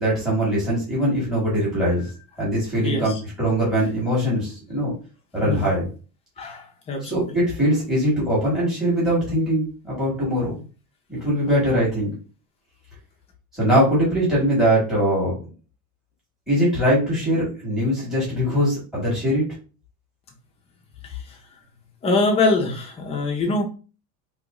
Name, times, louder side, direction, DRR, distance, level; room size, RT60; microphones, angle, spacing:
voice 1, 0.0-2.1 2.4-4.9 5.3-5.8 7.0-10.5 11.1-12.1 13.5-15.4 16.5-19.4, equal, ahead, -7 dB, 1.6 m, -21 dB
voice 2, 2.8-3.2 5.4-5.6 6.4-7.4 11.5-11.9 21.0-21.4 22.0-23.6, left 3 dB, 15° left, 1 dB, 0.6 m, -24 dB
3.1 x 3.0 x 3.6 m, 0.35 s
cardioid pair, 175°, 40 cm